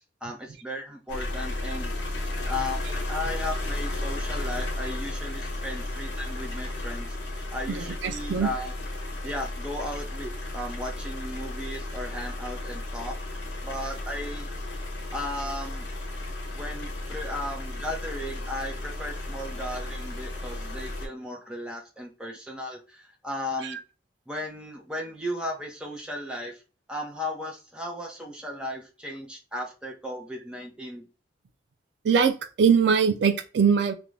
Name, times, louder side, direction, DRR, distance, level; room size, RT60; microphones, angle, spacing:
voice 1, 0.2-1.9 2.5-8.7 9.2-14.5 15.1-15.9 16.5-23.8 24.3-26.6 26.9-31.1, left 1 dB, 5° right, 0 dB, 0.7 m, -36 dB
sound 1, 1.1-21.1, left 1 dB, 85° left, 0.8 m, -34 dB
voice 2, 7.7-8.5 23.6-23.8 32.0-33.9, right 6 dB, 75° right, 9 dB, 0.4 m, -22 dB
2.5 x 2.2 x 3.1 m, 0.32 s
head